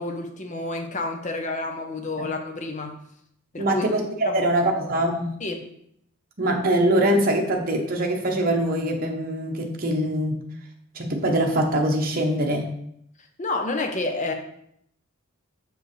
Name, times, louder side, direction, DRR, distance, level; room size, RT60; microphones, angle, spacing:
voice 1, 0.0-2.9 3.5-3.8 4.2-4.5 5.4-5.6 13.4-14.3, left 2 dB, 35° left, 4 dB, 0.7 m, -29 dB
voice 2, 3.6-5.4 6.4-10.4 10.9-12.7, right 1 dB, 40° right, 1 dB, 0.9 m, -23 dB
6.5 x 4.9 x 3.2 m, 0.72 s
head